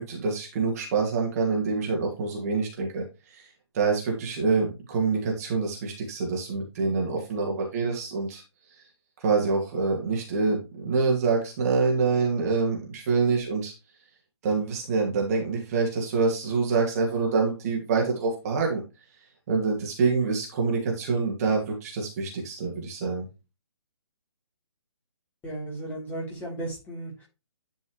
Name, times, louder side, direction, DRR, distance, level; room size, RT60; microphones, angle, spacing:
voice 1, 0.0-3.5 3.7-8.4 9.2-13.7 14.4-18.8 19.5-23.2, right 4 dB, 30° right, -1 dB, 2.4 m, -26 dB
voice 2, 25.4-27.3, right 1 dB, 10° left, -4 dB, 3.7 m, -35 dB
11.0 x 5.4 x 3.2 m, 0.27 s
figure-of-eight pair, 140°, 15 cm